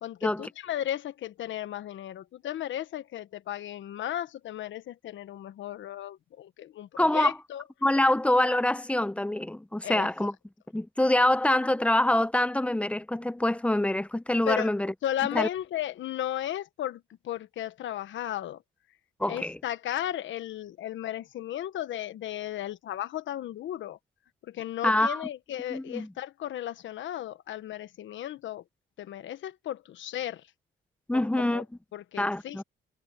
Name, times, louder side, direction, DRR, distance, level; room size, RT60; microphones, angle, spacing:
voice 1, 0.0-7.6 9.8-10.1 14.5-14.7 15.0-18.6 19.3-24.0 24.4-28.6 29.0-30.4 31.1-31.6 31.9-32.6, left 12 dB, 75° left, 1.3 m, -35 dB
voice 2, 7.0-7.3 7.8-10.3 10.7-14.9 15.3-15.5 19.2-19.6 24.8-25.2 25.7-26.1 31.1-31.7 32.2-32.6, left 1 dB, 5° left, 0.8 m, -25 dB
cardioid pair, 90°, 20 cm